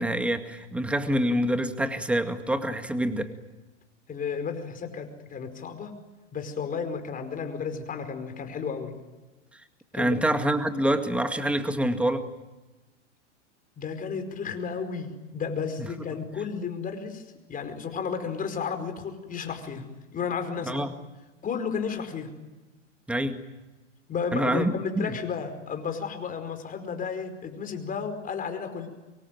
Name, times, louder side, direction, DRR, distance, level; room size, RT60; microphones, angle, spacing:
voice 1, 0.0-3.3 9.9-12.3 20.6-20.9 23.1-23.4 24.3-25.1, right 1 dB, 5° right, 8 dB, 2.1 m, -26 dB
voice 2, 4.1-5.9 6.3-9.0 9.9-10.3 13.8-17.2 17.5-20.8 21.4-22.3 24.1-28.9, left 6 dB, 20° left, 7 dB, 4.9 m, -33 dB
25.0 x 23.0 x 9.3 m, 1.1 s
hypercardioid pair, 115°, 37 cm